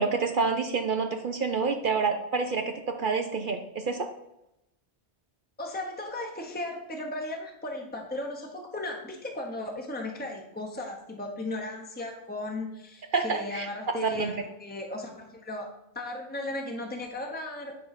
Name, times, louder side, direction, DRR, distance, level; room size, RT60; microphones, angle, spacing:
voice 1, 0.0-2.7 3.0-4.1 13.1-13.7 13.9-14.3, right 4 dB, 55° right, 5 dB, 0.8 m, -28 dB
voice 2, 5.6-15.7 15.9-17.7, left 2 dB, 10° left, 1 dB, 1.0 m, -36 dB
9.6 x 4.0 x 5.8 m, 0.87 s
omnidirectional pair, 1.1 m